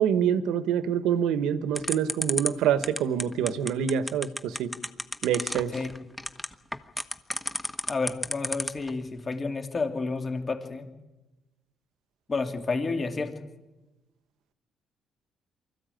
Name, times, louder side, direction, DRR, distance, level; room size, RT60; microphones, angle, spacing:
voice 1, 0.0-4.7 5.2-5.7, right 8 dB, 90° right, 13 dB, 1.2 m, -26 dB
sound 1, 1.7-8.9, left 1 dB, 10° left, 1.2 m, -31 dB
voice 2, 7.9-10.9 12.3-13.3, left 3 dB, 30° left, 6 dB, 2.5 m, -30 dB
24.0 x 14.5 x 9.1 m, 1.1 s
cardioid pair, 90°, 0 cm